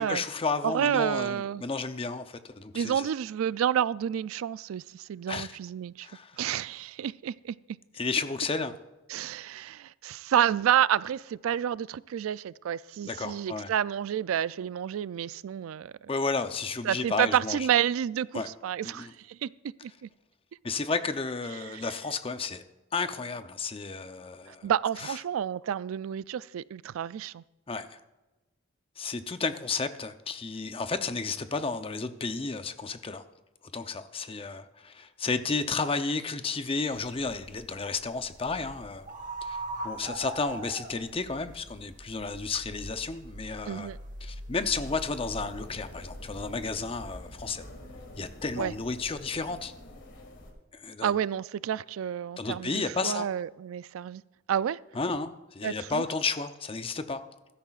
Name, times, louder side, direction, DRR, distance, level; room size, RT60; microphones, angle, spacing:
voice 1, 0.0-3.1 5.3-5.5 6.0-6.4 8.0-8.7 13.0-13.7 16.1-17.6 18.3-18.5 18.8-19.1 20.6-22.6 22.9-24.7 25.0-25.2 27.7-28.0 29.0-33.2 33.7-39.1 39.4-39.6 39.8-43.9 44.2-47.6 48.2-49.7 50.7-51.1 52.4-53.3 54.9-57.2, left 4 dB, 25° left, 0.6 m, -32 dB
voice 2, 0.6-1.6 2.7-6.1 6.4-7.6 9.1-16.1 16.8-19.5 19.8-20.1 21.6-21.9 24.5-27.4 43.6-44.0 48.6-48.7 51.0-54.2 54.5-54.8 55.6-56.0, right 9 dB, 85° right, 0.3 m, -29 dB
sound 1, 36.9-47.2, right 2 dB, 40° right, 1.3 m, -42 dB
sound 2, 44.7-50.5, left 1 dB, 60° left, 2.1 m, -46 dB
15.5 x 13.0 x 2.4 m
head